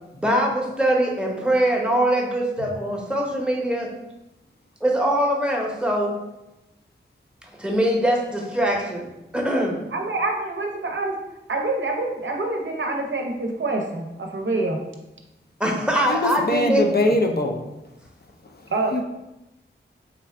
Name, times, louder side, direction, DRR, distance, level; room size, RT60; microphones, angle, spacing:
voice 1, 0.1-3.9 4.8-6.1 7.6-9.1 9.3-9.8 15.6-16.8, right 1 dB, 5° right, -1 dB, 0.7 m, -22 dB
voice 2, 9.9-11.1 11.5-14.8 18.7-19.0, right 2 dB, 70° right, 2 dB, 0.6 m, -26 dB
voice 3, 16.1-17.6 18.6-19.0, left 1 dB, 55° left, 3 dB, 0.4 m, -23 dB
3.8 x 2.3 x 3.3 m, 0.97 s
wide cardioid pair, 50°, 20 cm